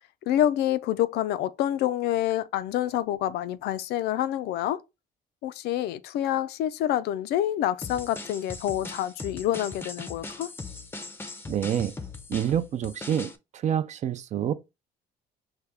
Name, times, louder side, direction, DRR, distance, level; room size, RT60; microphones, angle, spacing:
voice 1, 0.3-4.8 5.4-10.5, left 12 dB, 75° left, 0.4 m, -27 dB
sound 1, 7.8-13.4, left 3 dB, 15° left, 0.5 m, -39 dB
voice 2, 11.5-11.9 12.3-14.5, right 9 dB, 45° right, 0.4 m, -27 dB
4.9 x 2.2 x 3.4 m
cardioid pair, 110°, 17 cm